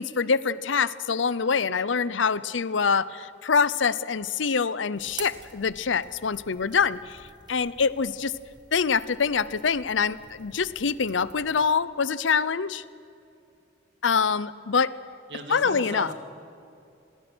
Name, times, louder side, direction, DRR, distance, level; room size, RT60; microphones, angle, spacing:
voice 1, 0.0-7.2 7.5-8.3 8.7-12.8 14.0-14.9 15.5-16.1, left 5 dB, 85° left, 17 dB, 0.7 m, -25 dB
sound 1, 4.9-11.7, right 5 dB, 20° right, 1.3 m, -48 dB
voice 2, 15.3-16.1, right 2 dB, 60° right, 5 dB, 2.3 m, -36 dB
26.5 x 19.0 x 6.2 m, 2.7 s
head